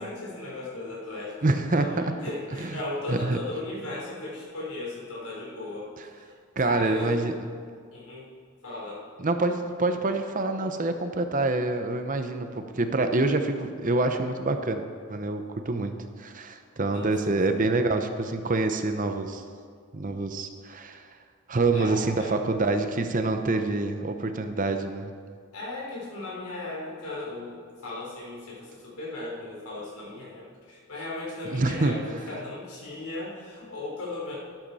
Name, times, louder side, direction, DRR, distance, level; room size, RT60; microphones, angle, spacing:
voice 1, 0.0-6.3 6.6-7.4 7.9-8.3 8.6-9.0 16.9-17.7 21.7-22.4 25.5-34.3, left 2 dB, 80° left, -4 dB, 3.8 m, -36 dB
voice 2, 1.4-2.1 3.1-3.4 6.6-7.3 9.2-14.8 15.1-19.4 19.9-21.0 21.5-25.1 31.5-32.0, right 2 dB, 35° right, 7 dB, 0.7 m, -26 dB
12.5 x 12.0 x 4.2 m, 2.1 s
head